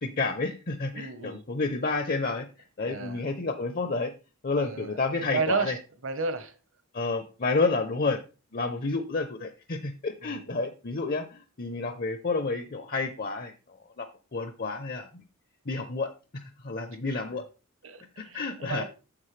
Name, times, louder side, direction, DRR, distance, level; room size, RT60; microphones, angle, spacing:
voice 1, 0.0-2.5 2.8-4.1 4.4-5.8 6.9-8.2 8.5-15.1 15.7-17.4 18.2-18.8, left 3 dB, 45° left, 0.7 m, -30 dB
voice 2, 0.9-1.4 2.9-3.2 4.6-5.7 6.0-6.6 10.2-10.6 17.8-18.8, right 4 dB, 60° right, 1.1 m, -33 dB
9.8 x 7.1 x 3.2 m
head